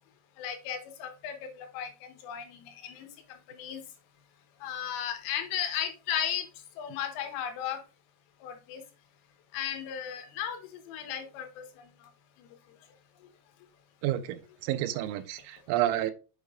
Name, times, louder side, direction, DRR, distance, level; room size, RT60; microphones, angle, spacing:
voice 1, 0.4-1.9 2.2-3.1 3.5-3.8 4.6-6.5 6.8-7.8 8.4-8.8 9.5-11.9, left 9 dB, 75° left, 7 dB, 3.7 m, -35 dB
voice 2, 14.0-16.1, right 13 dB, 90° right, 11 dB, 3.4 m, -30 dB
8.1 x 6.5 x 2.4 m, 0.32 s
omnidirectional pair, 6.0 m